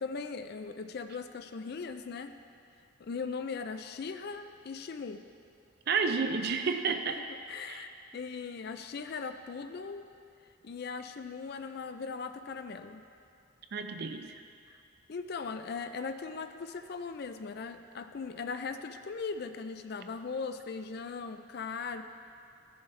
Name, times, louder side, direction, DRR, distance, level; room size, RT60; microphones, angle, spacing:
voice 1, 0.0-2.3 3.0-5.2 7.5-10.1 10.6-13.0 14.7-14.8 15.1-22.0, left 5 dB, 50° left, 9 dB, 0.4 m, -39 dB
voice 2, 5.9-7.2 7.7-7.8 13.7-14.3, right 5 dB, 50° right, 7 dB, 0.5 m, -31 dB
15.0 x 7.0 x 3.3 m, 2.6 s
head